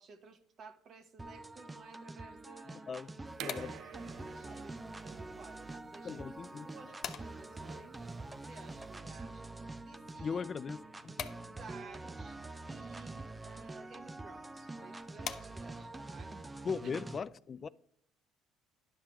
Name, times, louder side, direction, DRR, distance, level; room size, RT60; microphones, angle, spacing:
voice 1, 0.0-2.9 3.4-6.2 6.5-9.4 9.9-10.5 11.5-16.3 16.8-16.9, right 5 dB, 55° right, 1.3 m, -55 dB
sound 1, 1.2-17.2, right 2 dB, 15° right, 0.6 m, -46 dB
voice 2, 2.7-3.1 3.4-3.7 6.0-6.7 10.2-11.1 16.6-17.7, left 5 dB, 35° left, 0.3 m, -39 dB
sound 2, 3.1-16.0, left 9 dB, 60° left, 0.7 m, -50 dB
sound 3, 3.3-8.9, right 11 dB, 70° right, 0.5 m, -51 dB
11.0 x 5.8 x 4.5 m
supercardioid pair, 90°, 0 cm